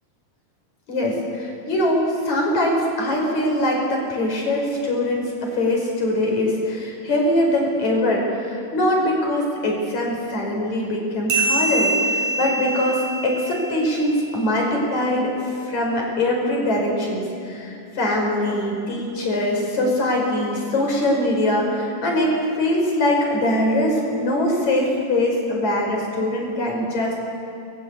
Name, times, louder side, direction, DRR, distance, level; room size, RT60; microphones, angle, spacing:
voice 1, 0.9-15.4 15.7-27.3, left 1 dB, 70° left, 0 dB, 6.9 m, -22 dB
sound 1, 11.3-14.3, right 2 dB, 80° right, 7.0 m, -24 dB
30.0 x 22.5 x 8.4 m, 2.6 s
omnidirectional pair, 3.3 m